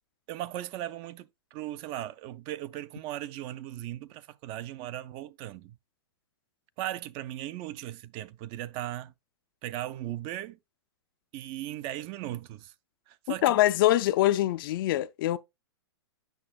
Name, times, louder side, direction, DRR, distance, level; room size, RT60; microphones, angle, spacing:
voice 1, 0.3-5.8 6.8-9.1 9.6-10.6 11.3-12.7 13.1-13.5, right 13 dB, 35° right, 0.4 m, -37 dB
voice 2, 13.4-15.4, left 15 dB, 55° left, 0.4 m, -24 dB
7.9 x 5.6 x 2.3 m
hypercardioid pair, 120°, 14 cm